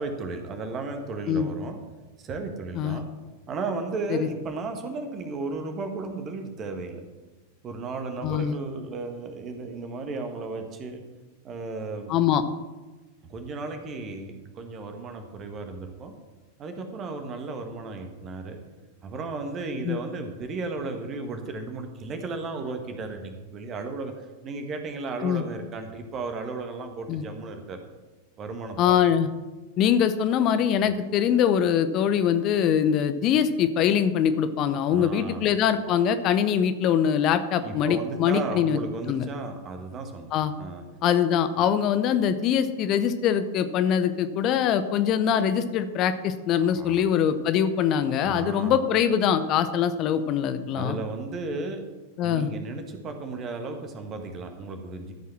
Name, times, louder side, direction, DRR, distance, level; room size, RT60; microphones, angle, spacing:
voice 1, 0.0-1.8 2.2-3.1 3.5-7.0 7.6-11.0 11.4-12.1 13.3-16.1 16.6-18.6 19.0-27.8 28.4-29.0 34.9-35.6 37.6-40.3 40.6-40.8 46.7-47.0 48.2-48.8 50.7-51.8 52.2-55.1, right 3 dB, 30° right, 5 dB, 1.7 m, -34 dB
voice 2, 8.2-8.5 12.1-12.4 19.8-20.0 25.2-25.4 27.1-27.2 28.8-29.3 29.8-38.8 39.1-39.3 40.3-40.5 41.0-51.0 52.2-52.5, left 8 dB, 35° left, 11 dB, 0.7 m, -23 dB
13.5 x 5.6 x 6.1 m, 1.2 s
figure-of-eight pair, 90°, 0 cm